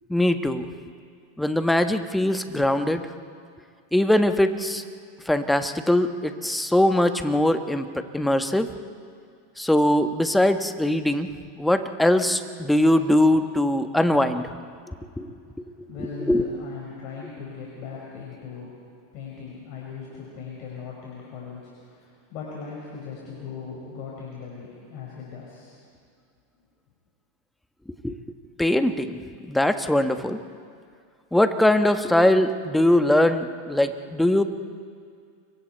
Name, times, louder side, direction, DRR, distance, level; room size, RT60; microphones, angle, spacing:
voice 1, 0.1-0.7 1.4-3.0 3.9-4.8 5.3-8.7 9.6-11.3 11.6-14.5 15.2-15.3 16.3-16.5 28.0-28.2 28.6-29.2 29.5-30.4 31.3-34.4, left 1 dB, 5° left, 8 dB, 1.3 m, -21 dB
voice 2, 15.5-18.7 19.1-25.8, left 5 dB, 55° left, -4 dB, 5.4 m, -39 dB
29.5 x 23.5 x 4.5 m, 2.3 s
hypercardioid pair, 95°, 0 cm